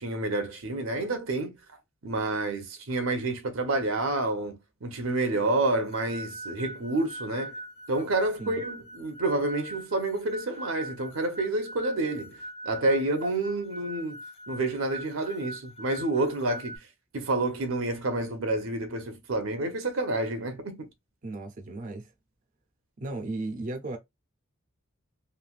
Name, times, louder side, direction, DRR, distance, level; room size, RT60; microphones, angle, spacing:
voice 1, 0.0-1.5 2.0-7.5 7.9-12.4 12.6-14.2 14.5-16.8 17.1-20.9, right 2 dB, 80° right, 0.8 m, -29 dB
sound 1, 5.9-16.8, right 1 dB, 30° left, 0.5 m, -42 dB
voice 2, 21.2-22.1 23.0-24.0, right 2 dB, 40° right, 0.5 m, -35 dB
3.2 x 2.6 x 2.4 m
head